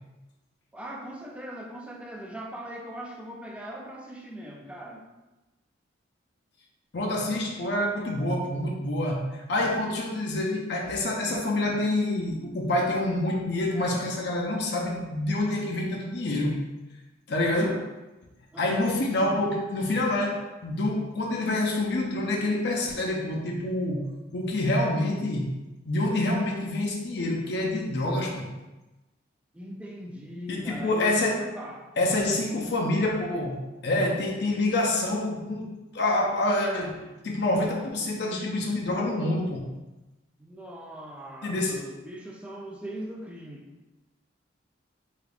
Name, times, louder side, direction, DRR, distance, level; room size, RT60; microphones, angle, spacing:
voice 1, 0.7-5.0 17.5-17.8 18.5-19.0 29.5-31.9 40.4-43.7, equal, 5° right, -1 dB, 0.3 m, -40 dB
voice 2, 6.9-16.6 17.3-17.8 18.6-24.1 24.3-25.5 25.9-28.5 30.5-31.5 32.0-39.7 41.4-41.8, left 1 dB, 60° left, -1 dB, 0.5 m, -27 dB
3.6 x 3.3 x 2.5 m, 1.1 s
head